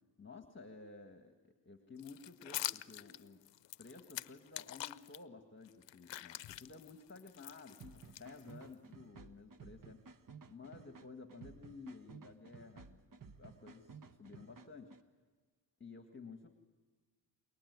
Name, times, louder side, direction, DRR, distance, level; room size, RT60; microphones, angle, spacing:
voice 1, 0.2-3.5 3.8-10.0 10.5-13.0 13.4-14.9 15.8-16.5, left 4 dB, 25° left, 6 dB, 1.8 m, -53 dB
sound 1, 2.0-5.2 5.7-8.7, left 14 dB, 70° left, 0.7 m, -45 dB
sound 2, 7.8-15.0, right 5 dB, 45° right, 1.2 m, -56 dB
27.5 x 19.5 x 9.6 m, 1.5 s
cardioid pair, 70°, 45 cm